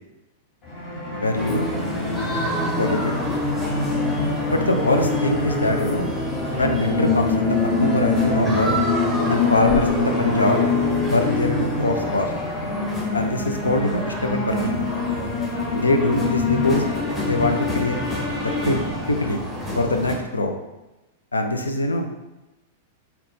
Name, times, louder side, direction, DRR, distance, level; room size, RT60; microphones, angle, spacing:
sound 1, 0.6-19.4, left 3 dB, 35° left, 1.2 m, -25 dB
voice 1, 1.1-1.7 2.8-3.1 4.5-6.1 6.5-7.6 7.8-8.8 9.3-10.7 11.0-12.3 13.1-14.8 15.7-16.8 17.2-18.1 18.4-19.4 19.8-20.5 21.3-22.1, left 2 dB, 80° left, 5 dB, 0.5 m, -23 dB
sound 2, 1.3-20.1, equal, 5° left, 1.1 m, -29 dB
4.0 x 2.9 x 3.5 m, 1.0 s
figure-of-eight pair, 95°, 0 cm